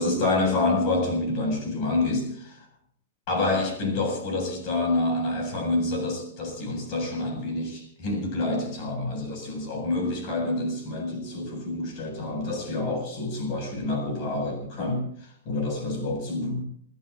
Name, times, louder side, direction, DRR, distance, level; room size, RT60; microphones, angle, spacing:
voice 1, 0.0-2.7 3.3-16.7, left 2 dB, 45° left, 3 dB, 7.5 m, -27 dB
28.5 x 14.5 x 2.8 m, 0.65 s
hypercardioid pair, 145°, 0 cm